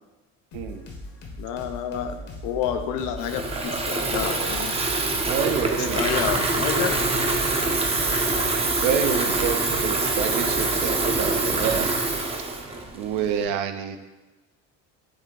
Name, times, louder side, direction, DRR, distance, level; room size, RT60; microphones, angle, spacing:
sound 1, 0.5-11.8, left 2 dB, 55° left, 1.0 m, -39 dB
voice 1, 1.4-4.8 5.9-7.0 9.3-9.4, left 8 dB, 75° left, 8 dB, 0.5 m, -29 dB
Water tap faucet / Fill (with liquid), 3.2-13.4, right 3 dB, 20° right, 0.5 m, -25 dB
voice 2, 5.2-6.3 8.8-11.9 12.9-14.0, right 7 dB, 75° right, 7 dB, 0.5 m, -27 dB
4.9 x 2.6 x 3.7 m, 1.1 s
supercardioid pair, 95°, 33 cm